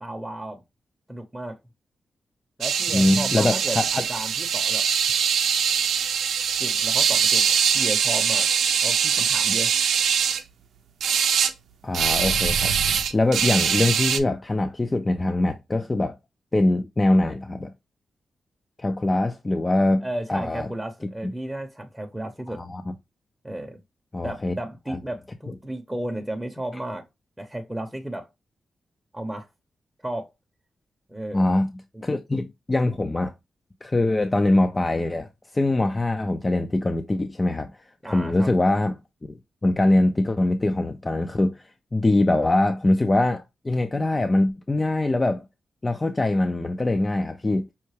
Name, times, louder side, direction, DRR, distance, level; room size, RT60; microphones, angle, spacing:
voice 1, 0.0-0.6 1.1-1.6 2.6-4.8 6.6-8.5 8.8-9.7 20.0-22.6 23.4-23.8 24.2-27.0 27.4-28.3 29.1-29.5 30.0-30.3 31.1-31.5 31.9-32.1 38.0-38.5, right 1 dB, 10° right, 0.8 m, -33 dB
sound 1, 2.6-10.4 11.0-11.5 11.9-14.2, right 7 dB, 85° right, 0.5 m, -22 dB
voice 2, 2.9-3.8 11.8-12.8 13.1-16.2 16.5-17.7 18.8-20.7 22.5-22.8 24.1-24.5 24.9-25.0 31.3-31.7 32.0-33.3 33.8-35.3 35.5-37.7 38.0-39.0 39.3-45.4 45.8-47.6, left 2 dB, 25° left, 0.5 m, -23 dB
5.6 x 2.2 x 3.2 m
cardioid pair, 65°, 0 cm